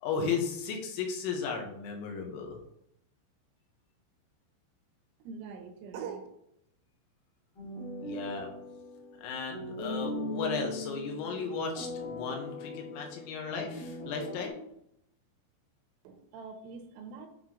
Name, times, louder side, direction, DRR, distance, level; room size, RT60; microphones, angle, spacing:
voice 1, 0.0-2.6 8.0-8.5 9.2-14.6, left 5 dB, 85° left, 2 dB, 3.7 m, -35 dB
voice 2, 5.2-6.3 16.0-17.3, right 6 dB, 80° right, 6 dB, 3.1 m, -43 dB
sound 1, 7.5-14.5, left 2 dB, 65° left, 1.0 m, -39 dB
9.2 x 3.1 x 3.9 m, 0.76 s
omnidirectional pair, 5.9 m